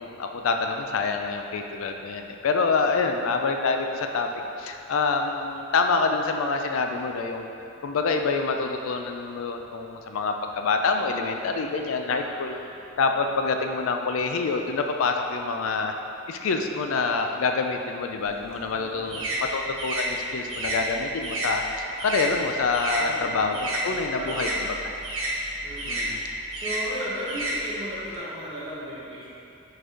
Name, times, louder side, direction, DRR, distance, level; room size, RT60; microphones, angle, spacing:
voice 1, 0.0-4.3 4.6-7.5 7.8-12.6 13.0-15.9 16.3-24.5 25.9-26.2, left 4 dB, 80° left, 4 dB, 0.4 m, -26 dB
voice 2, 11.5-12.8 13.1-13.4 18.7-19.5 22.9-23.4 24.1-25.0 25.6-26.1 26.6-29.3, equal, 25° right, -8 dB, 1.3 m, -37 dB
sound 1, 18.3-23.0 23.3-28.2, right 1 dB, 75° right, 1.1 m, -31 dB
5.1 x 4.0 x 4.9 m, 2.8 s
head